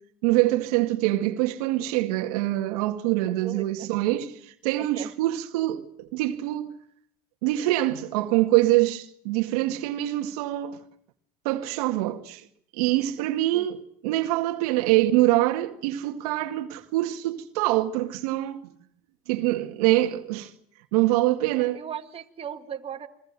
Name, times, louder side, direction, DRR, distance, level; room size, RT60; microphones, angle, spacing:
voice 1, 0.2-6.7 7.4-10.8 11.4-12.5 12.7-18.6 19.3-20.5 20.9-21.8, right 16 dB, 75° right, 2.2 m, -24 dB
voice 2, 3.4-3.9 4.8-5.1 13.2-13.3 13.5-13.7 21.6-23.1, right 9 dB, 30° right, 2.3 m, -37 dB
28.0 x 23.0 x 7.6 m
supercardioid pair, 100°, 19 cm